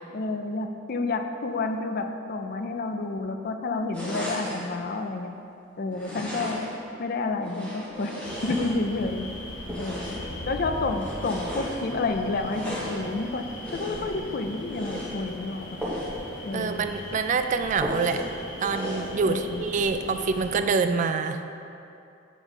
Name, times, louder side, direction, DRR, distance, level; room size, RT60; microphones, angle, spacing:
voice 1, 0.1-5.3 5.8-6.7 7.0-8.1 8.4-9.3 9.8-10.2 10.5-13.4 13.7-15.8 16.4-16.8 19.3-19.6, left 3 dB, 55° left, 6 dB, 0.5 m, -30 dB
sound 1, 3.9-4.7 5.9-6.8 7.4-9.1 9.6-10.4 10.9-11.8 12.4-13.0 13.6-14.2 14.6-15.1 15.8-16.2 16.5-16.6 17.0-17.1 17.8-18.3 18.6-19.1, equal, 10° left, 1.3 m, -35 dB
sound 2, 8.2-20.6, left 1 dB, 85° left, 1.2 m, -39 dB
voice 2, 16.5-18.2 18.6-21.5, right 5 dB, 45° right, 8 dB, 0.3 m, -26 dB
8.3 x 3.5 x 5.4 m, 2.7 s
head